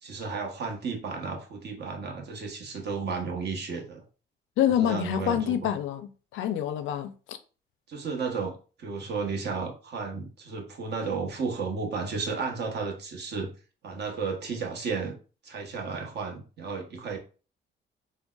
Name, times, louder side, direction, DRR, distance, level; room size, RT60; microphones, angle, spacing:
voice 1, 0.0-4.0 4.8-5.7 7.9-13.5 13.8-15.1 15.4-17.2, right 4 dB, 60° right, 0.9 m, -33 dB
voice 2, 4.6-7.4, left 10 dB, 80° left, 0.4 m, -27 dB
3.9 x 2.1 x 2.3 m
cardioid pair, 90°, 20 cm